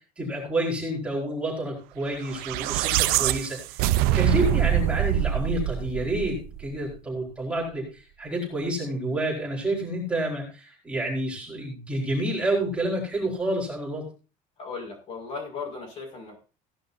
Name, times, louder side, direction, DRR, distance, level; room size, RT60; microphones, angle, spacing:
voice 1, 0.2-3.6 4.1-14.0, right 1 dB, 5° right, -4 dB, 4.5 m, -29 dB
sound 1, 2.3-6.7, right 13 dB, 80° right, 0.7 m, -24 dB
voice 2, 14.6-16.4, left 4 dB, 40° left, 0 dB, 5.7 m, -36 dB
17.0 x 11.0 x 2.7 m, 0.33 s
cardioid pair, 175°, 16 cm